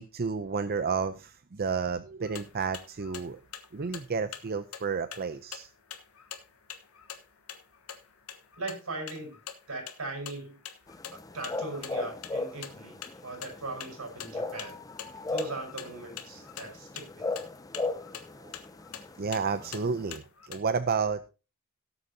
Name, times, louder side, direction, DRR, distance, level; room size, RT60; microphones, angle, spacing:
voice 1, 0.0-3.4 3.7-5.7 18.4-18.6 19.2-21.3, right 5 dB, 45° right, 11 dB, 0.6 m, -31 dB
sound 1, 2.2-20.6, left 9 dB, 80° left, 1.3 m, -46 dB
voice 2, 8.6-9.4 9.7-10.6 11.1-14.8 15.3-17.5, right 2 dB, 85° right, 4 dB, 5.3 m, -39 dB
sound 2, 10.9-20.2, left 3 dB, 15° left, 0.6 m, -38 dB
17.5 x 8.0 x 2.8 m, 0.30 s
head